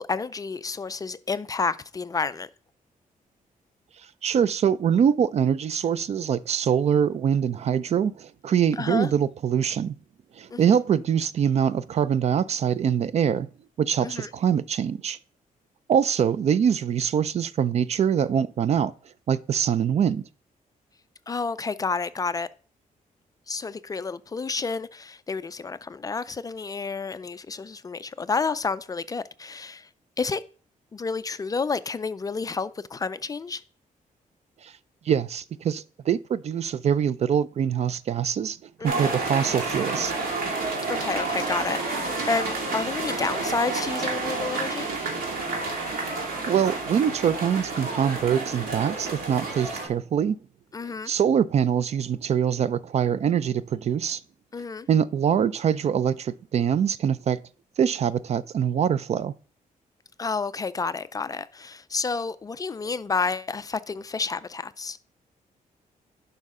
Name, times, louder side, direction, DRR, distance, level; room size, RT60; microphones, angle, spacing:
voice 1, 0.0-2.5 8.8-9.1 10.5-10.8 14.0-14.3 21.3-22.5 23.5-29.9 30.2-30.4 30.9-33.6 38.8-39.2 40.9-44.9 50.7-51.1 54.5-54.9 60.2-65.0, left 4 dB, 25° left, 0.3 m, -30 dB
voice 2, 4.2-9.9 10.4-13.5 13.8-15.2 15.9-18.9 19.3-20.3 34.6-34.7 35.1-38.6 38.8-40.1 46.5-50.4 51.0-54.2 54.9-57.4 57.8-59.3, right 8 dB, 50° right, 0.4 m, -24 dB
sound 1, 38.8-49.9, right 3 dB, 85° right, 2.3 m, -30 dB
10.5 x 5.5 x 3.6 m
cardioid pair, 135°, 15 cm